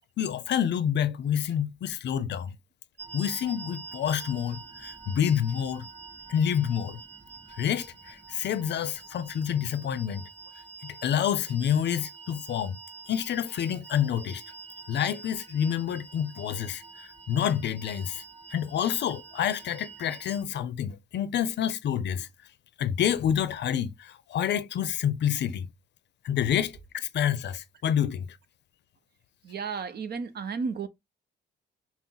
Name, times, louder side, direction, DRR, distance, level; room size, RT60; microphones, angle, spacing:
voice 1, 0.2-2.5 3.1-5.8 6.3-7.0 7.6-10.2 10.8-12.8 13.1-14.4 14.9-18.2 18.5-22.3 22.8-25.7 26.2-28.3, left 9 dB, 60° left, 0.6 m, -28 dB
sound 1, 3.0-20.4, right 4 dB, 30° right, 2.6 m, -46 dB
voice 2, 29.4-30.9, right 5 dB, 55° right, 0.8 m, -33 dB
6.0 x 2.1 x 3.8 m
cardioid pair, 90°, 20 cm